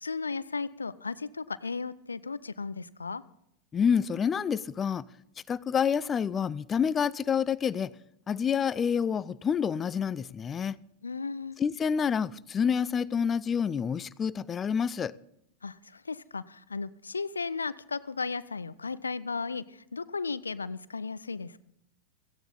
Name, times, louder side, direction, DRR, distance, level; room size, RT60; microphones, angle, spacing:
voice 1, 0.0-3.2 11.0-11.6 15.6-21.6, left 4 dB, 75° left, 0.6 m, -35 dB
voice 2, 3.7-5.0 5.5-7.9 8.3-10.7 11.6-15.1, left 7 dB, 20° left, 0.5 m, -28 dB
17.0 x 15.5 x 4.1 m
figure-of-eight pair, 90°, 0 cm